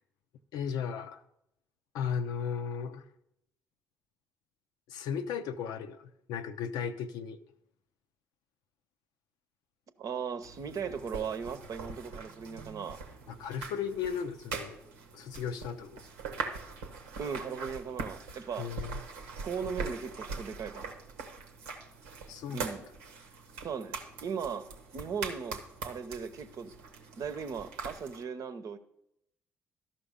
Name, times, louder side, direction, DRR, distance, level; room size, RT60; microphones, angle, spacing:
voice 1, 0.5-1.2 1.9-3.0 4.9-7.4 13.3-14.8 15.1-16.0 18.6-19.0 22.3-22.6, left 7 dB, 70° left, 0.6 m, -35 dB
voice 2, 10.0-13.0 17.2-18.7 19.4-21.0 22.5-22.9 23.6-26.7 27.2-28.8, right 6 dB, 55° right, 0.8 m, -38 dB
sound 1, 10.4-28.2, right 4 dB, 90° right, 1.0 m, -42 dB
12.5 x 5.7 x 5.1 m
hypercardioid pair, 55°, 7 cm